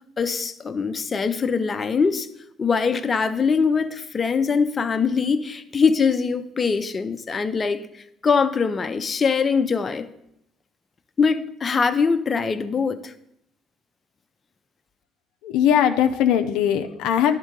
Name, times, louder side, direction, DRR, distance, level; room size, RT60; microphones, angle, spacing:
voice 1, 0.2-2.3 2.6-7.9 8.2-10.1 11.2-13.1, left 5 dB, 35° left, 0.6 m, -22 dB
voice 2, 15.4-17.4, left 9 dB, 80° left, 0.5 m, -20 dB
11.0 x 3.7 x 5.2 m
supercardioid pair, 75°, 0 cm